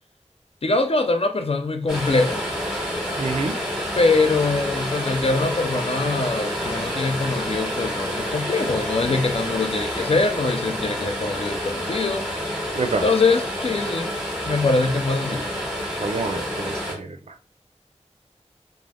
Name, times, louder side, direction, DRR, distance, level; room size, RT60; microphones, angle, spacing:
voice 1, 0.6-2.4 4.0-12.4 13.0-14.1 14.4-15.5, left 3 dB, 55° left, 0.4 m, -23 dB
sound 1, 1.9-16.9, equal, 5° right, 0.9 m, -28 dB
voice 2, 3.2-3.6 12.7-13.0 16.0-17.3, right 3 dB, 65° right, 0.4 m, -27 dB
2.4 x 2.1 x 3.2 m
wide cardioid pair, 55°, 12 cm